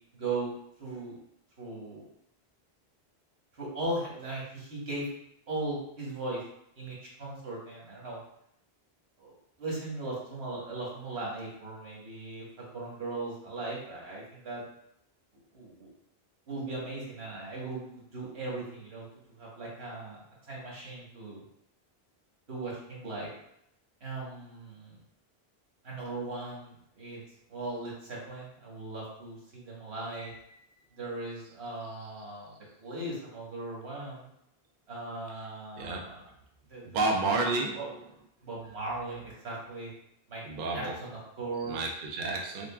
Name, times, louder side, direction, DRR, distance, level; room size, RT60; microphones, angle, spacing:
voice 1, 0.1-0.5 0.8-1.2 1.6-2.1 3.6-5.1 5.5-6.4 6.8-8.2 9.2-9.3 9.6-14.6 15.5-15.9 16.5-19.0 19.4-20.2 20.5-21.4 22.5-23.3 24.0-25.0 25.8-27.2 27.5-30.3 31.0-32.5 32.8-34.3 34.9-36.3 36.7-37.5 37.7-37.9 38.4-39.9 40.3-41.8, right 2 dB, 85° right, -4 dB, 1.5 m, -38 dB
voice 2, 35.8-36.1 36.9-37.8 40.4-41.0 41.7-42.7, right 3 dB, 60° right, 1 dB, 0.6 m, -30 dB
3.7 x 3.5 x 2.3 m, 0.76 s
omnidirectional pair, 1.1 m